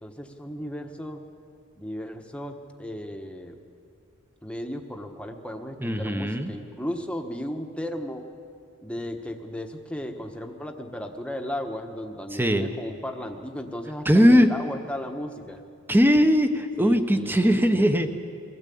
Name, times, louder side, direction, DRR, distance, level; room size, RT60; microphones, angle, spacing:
voice 1, 0.0-1.2 1.8-3.6 4.4-8.2 8.8-15.6 16.8-18.1, equal, 5° left, 4 dB, 1.2 m, -35 dB
voice 2, 5.8-6.5 12.3-12.7 14.0-14.5 15.9-18.1, equal, 10° right, 8 dB, 1.0 m, -20 dB
22.5 x 16.5 x 8.6 m, 2.5 s
head